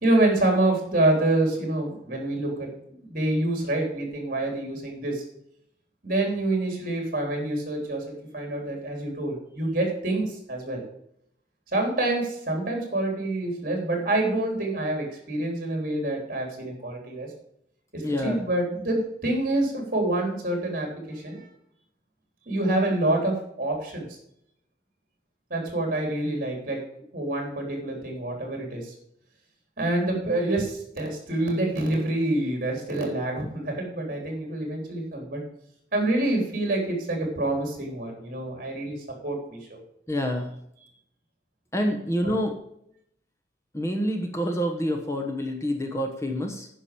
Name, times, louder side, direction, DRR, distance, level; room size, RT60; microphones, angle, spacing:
voice 1, 0.0-5.2 6.0-10.8 11.7-17.3 17.9-21.5 22.5-24.1 25.5-26.8 27.1-28.9 29.8-35.4 35.9-39.0 39.2-39.8 42.2-42.3, right 2 dB, 50° right, 1 dB, 3.7 m, -27 dB
voice 2, 18.0-18.4 40.1-40.5 41.7-42.6 43.7-46.7, equal, 15° left, 4 dB, 1.1 m, -27 dB
9.9 x 6.0 x 6.8 m, 0.73 s
head